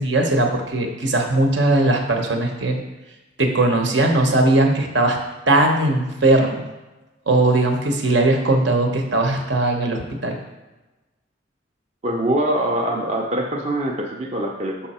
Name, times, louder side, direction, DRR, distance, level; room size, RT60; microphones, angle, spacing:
voice 1, 0.0-2.8 3.4-5.2 5.5-6.6 7.3-10.4, right 2 dB, 75° right, 2 dB, 1.0 m, -19 dB
voice 2, 12.0-14.9, right 1 dB, 35° right, 0 dB, 0.6 m, -23 dB
5.7 x 5.7 x 4.2 m, 1.1 s
head